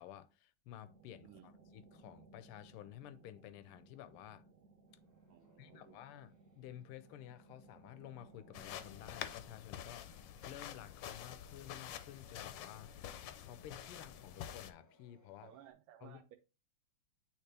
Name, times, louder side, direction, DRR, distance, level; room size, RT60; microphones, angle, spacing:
voice 1, 0.0-4.5 5.6-12.9 13.4-15.5 16.0-16.2, left 12 dB, 85° left, 1.5 m, -53 dB
sound 1, 0.8-9.6, right 3 dB, 55° right, 1.2 m, -63 dB
sound 2, 4.9-15.7, left 3 dB, 20° left, 0.4 m, -70 dB
voice 2, 5.3-6.0 15.4-16.4, right 10 dB, 80° right, 1.4 m, -59 dB
sound 3, 8.5-14.7, left 10 dB, 70° left, 1.2 m, -48 dB
8.7 x 3.3 x 3.3 m
omnidirectional pair, 2.4 m